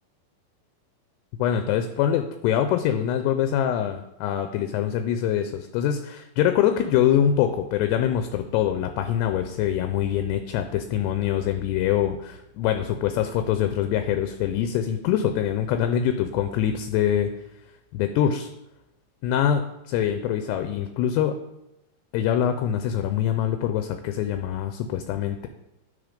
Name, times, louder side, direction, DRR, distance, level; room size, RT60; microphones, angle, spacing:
voice 1, 1.4-17.3 17.9-18.5 19.2-21.4 22.1-25.5, left 10 dB, 85° left, 8 dB, 2.5 m, -24 dB
11.0 x 3.8 x 5.0 m, 0.91 s
omnidirectional pair, 5.1 m